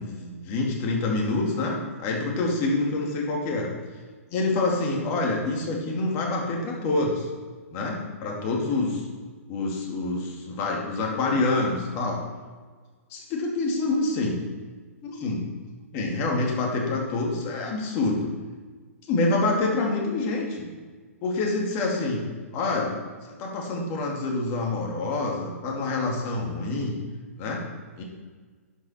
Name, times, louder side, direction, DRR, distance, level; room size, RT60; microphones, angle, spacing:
voice 1, 0.0-3.7 4.3-7.3 7.7-9.1 9.5-12.2 13.1-14.4 15.0-15.4 15.9-18.3 19.1-20.7 21.2-22.2 22.5-22.9 23.4-27.0 27.4-27.6 28.0-28.1, left 2 dB, 35° left, -1 dB, 2.5 m, -26 dB
11.0 x 5.6 x 4.4 m, 1.5 s
hypercardioid pair, 125°, 8 cm